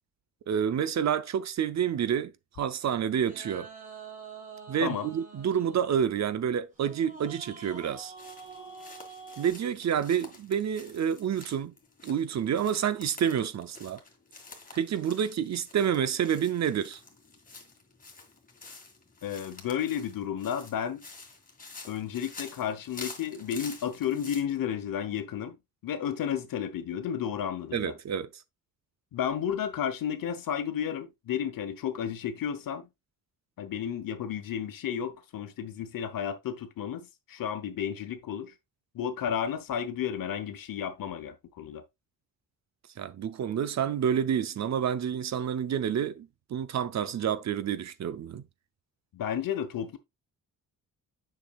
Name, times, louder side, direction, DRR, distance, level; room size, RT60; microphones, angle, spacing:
voice 1, 0.5-3.7 4.7-8.1 9.4-11.7 12.0-14.0 14.7-17.0 27.7-28.3 43.0-48.4, right 8 dB, 50° right, 0.7 m, -29 dB
sound 1, 3.2-9.5, right 4 dB, 20° right, 2.1 m, -46 dB
sound 2, 8.2-24.4, left 3 dB, 25° left, 1.9 m, -49 dB
voice 2, 19.2-21.0 21.9-25.6 25.8-27.9 29.1-32.9 33.6-38.5 38.9-41.8 49.1-50.0, left 8 dB, 70° left, 1.1 m, -32 dB
7.0 x 6.0 x 2.4 m
cardioid pair, 85°, 35 cm